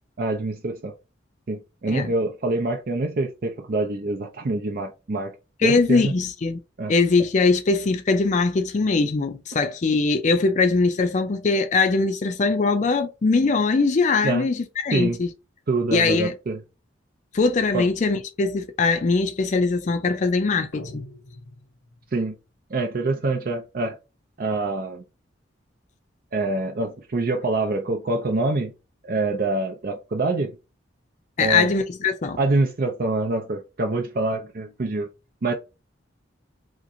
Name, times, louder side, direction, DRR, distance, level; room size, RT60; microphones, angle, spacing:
voice 1, 0.2-0.9 1.5-5.3 5.6-6.1 6.8-6.9 14.2-14.5 14.9-15.2 15.7-16.6 17.7-17.9 22.1-22.3 22.7-24.0 24.4-25.0 26.3-28.7 29.0-30.5 31.4-31.7 32.4-35.1 35.4-35.5, right 2 dB, 50° right, 0.5 m, -25 dB
voice 2, 5.6-6.6 6.9-15.3 15.9-16.3 17.3-21.0 31.4-32.4, left 4 dB, 40° left, 0.4 m, -21 dB
sound 1, 20.7-22.2, left 2 dB, 65° left, 0.9 m, -42 dB
2.9 x 2.5 x 3.6 m
head